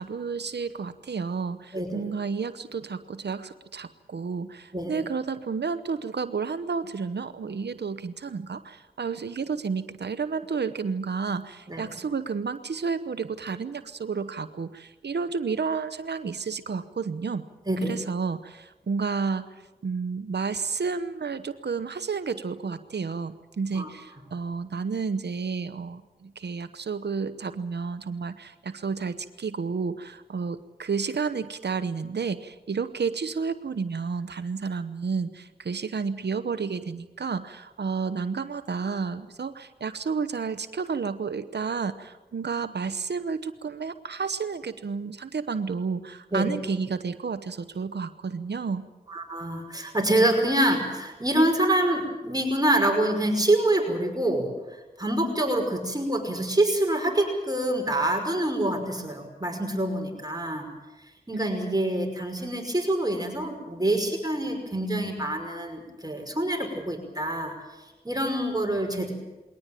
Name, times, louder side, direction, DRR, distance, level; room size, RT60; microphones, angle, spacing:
voice 1, 0.0-17.4 17.8-48.8 61.3-61.7, right 5 dB, 90° right, 11 dB, 0.9 m, -31 dB
voice 2, 1.7-2.0 4.7-5.0 11.7-11.8 17.7-18.0 23.7-23.9 46.3-46.5 49.1-54.5 55.0-60.7 61.3-67.5 68.0-69.1, right 1 dB, 25° right, 3 dB, 5.5 m, -26 dB
21.5 x 18.5 x 9.0 m, 1.1 s
cardioid pair, 45°, 17 cm